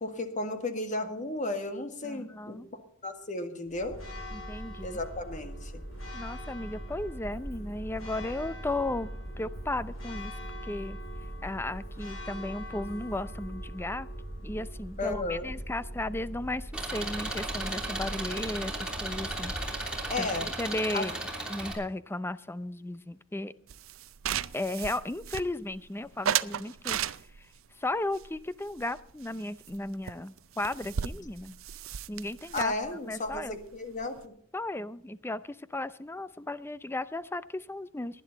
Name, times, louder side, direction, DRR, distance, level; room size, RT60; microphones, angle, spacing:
voice 1, 0.0-2.6 3.0-4.0 4.8-5.8 15.0-15.5 20.1-20.5 20.9-21.1 32.5-34.3, left 2 dB, 40° left, 7 dB, 1.8 m, -34 dB
voice 2, 2.0-2.7 4.3-5.0 6.1-9.1 9.4-10.3 10.6-11.0 11.4-14.1 14.4-19.6 19.8-19.9 20.2-21.2 21.5-23.5 24.5-27.0 27.8-31.6 32.1-32.7 33.0-33.6 34.5-38.2, left 2 dB, 10° left, 15 dB, 0.5 m, -35 dB
Church bell, 3.7-20.9, equal, 80° left, 6.6 m, -41 dB
Engine, 16.7-21.7, right 2 dB, 5° right, 3.1 m, -35 dB
sound 1, 23.7-25.8 26.2-27.6 28.1-29.4 29.7-29.8 30.1-30.2 30.4-34.2, right 9 dB, 90° right, 0.5 m, -35 dB
19.0 x 10.5 x 4.0 m, 0.63 s
head